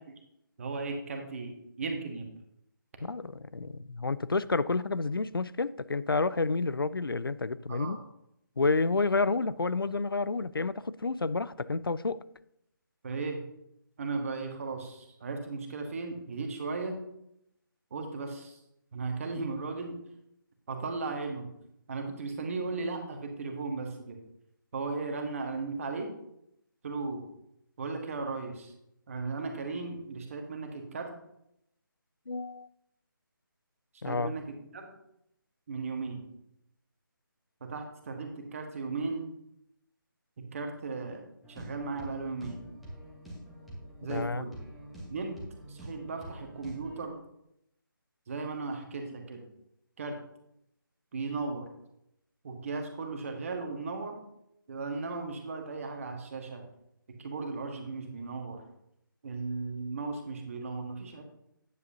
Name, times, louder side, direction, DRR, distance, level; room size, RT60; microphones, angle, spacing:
voice 1, 0.6-2.2 7.7-8.0 13.0-13.4 14.0-17.0 17.9-18.6 18.9-19.9 20.7-21.5 21.9-24.2 24.7-26.1 26.8-27.2 27.8-28.7 29.1-31.1 34.0-34.4 34.7-34.9 35.7-36.2 37.7-39.2 40.5-41.2 41.5-42.7 44.0-44.6 45.1-45.3 45.8-47.1 48.3-49.4 50.0-50.1 51.1-51.7 52.4-54.2 54.7-56.6 57.2-58.6 59.2-61.2, right 4 dB, 40° right, 3 dB, 1.4 m, -36 dB
voice 2, 3.0-8.0 8.6-12.2 32.3-32.7 34.0-34.3 44.1-44.5, left 3 dB, 90° left, 17 dB, 0.4 m, -30 dB
sound 1, 41.4-47.0, right 1 dB, ahead, 1.3 m, -46 dB
9.4 x 8.1 x 2.8 m, 0.78 s
figure-of-eight pair, 150°, 12 cm